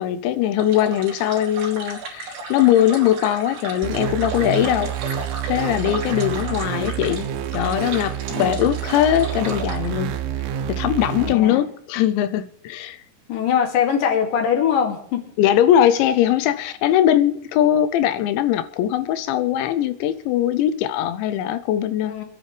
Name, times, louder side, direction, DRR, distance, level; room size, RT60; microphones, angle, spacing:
voice 1, 0.0-4.9 5.4-7.3 7.5-10.2 10.7-13.0 15.4-22.2, left 11 dB, 80° left, 12 dB, 2.8 m, -20 dB
sound 1, 0.6-9.9, right 3 dB, 65° right, 4.7 m, -35 dB
sound 2, 3.8-11.3, right 9 dB, 85° right, 3.4 m, -28 dB
voice 2, 11.2-11.6 13.3-15.2 22.0-22.2, left 8 dB, 55° left, 2 dB, 3.6 m, -22 dB
26.0 x 10.0 x 3.3 m, 0.65 s
omnidirectional pair, 5.5 m